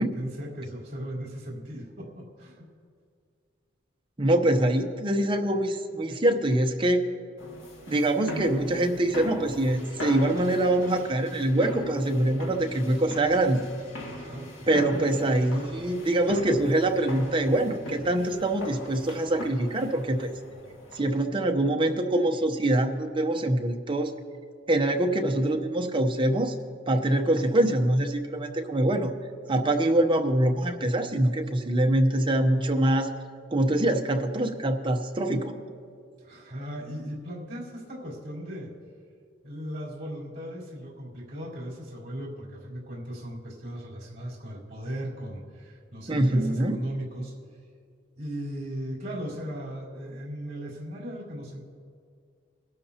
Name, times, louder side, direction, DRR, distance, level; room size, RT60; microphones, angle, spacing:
voice 1, 0.0-2.7 14.1-15.0 36.2-38.7 39.4-47.3 48.2-51.6, equal, 40° right, -7 dB, 3.7 m, -37 dB
voice 2, 4.2-7.0 7.9-13.6 14.7-20.3 20.9-24.1 24.7-26.5 26.9-29.1 29.5-33.1 33.5-35.5 46.1-46.8, right 1 dB, 25° right, 4 dB, 0.8 m, -24 dB
sound 1, 7.4-21.3, left 1 dB, 75° left, 2.2 m, -40 dB
22.0 x 12.5 x 2.9 m, 2.3 s
head